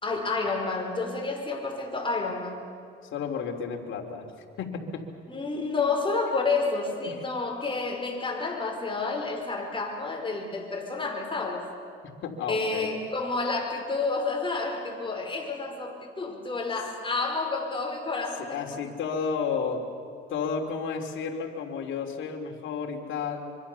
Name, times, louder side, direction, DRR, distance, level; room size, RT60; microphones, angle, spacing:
voice 1, 0.0-2.7 5.3-11.6 12.5-18.8, left 3 dB, 25° left, 2 dB, 5.3 m, -30 dB
voice 2, 3.1-4.3 4.6-5.1 5.6-6.0 7.0-7.2 12.2-13.0 18.5-19.8 20.3-23.5, left 6 dB, 75° left, 2 dB, 3.2 m, -32 dB
25.0 x 24.5 x 7.1 m, 2.4 s
cardioid pair, 90°, 20 cm